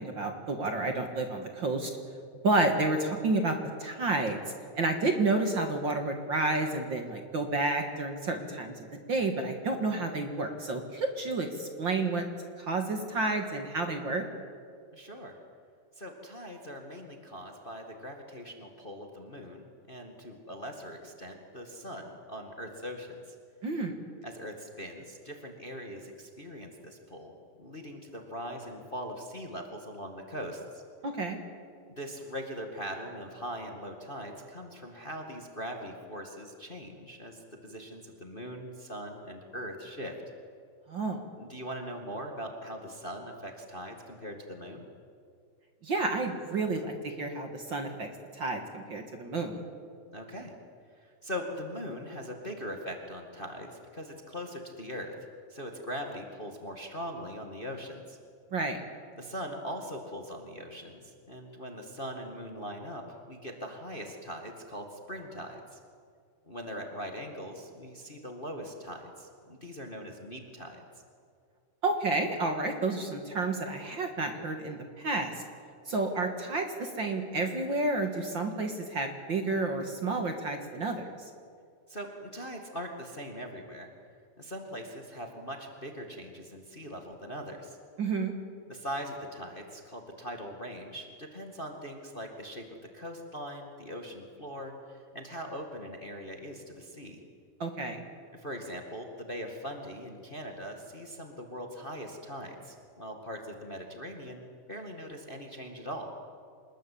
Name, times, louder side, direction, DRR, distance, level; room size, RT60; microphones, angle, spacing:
voice 1, 0.0-1.9 2.4-4.4 4.8-8.7 9.1-12.2 12.6-14.2 23.6-24.0 31.0-31.4 40.9-41.2 45.8-48.1 48.3-49.6 58.5-58.8 71.8-75.4 75.9-81.3 88.0-88.3 97.6-98.0, right 2 dB, 45° right, 5 dB, 2.1 m, -30 dB
voice 2, 14.9-15.4 16.0-23.3 24.2-27.3 27.6-30.8 31.9-40.2 41.4-44.8 50.1-50.5 51.0-55.1 55.5-58.2 59.2-65.8 66.5-70.8 81.9-83.9 84.4-87.8 88.7-92.7 92.9-97.2 98.3-106.1, equal, 20° left, 3 dB, 1.8 m, -41 dB
26.0 x 21.0 x 8.5 m, 2.3 s
omnidirectional pair, 3.3 m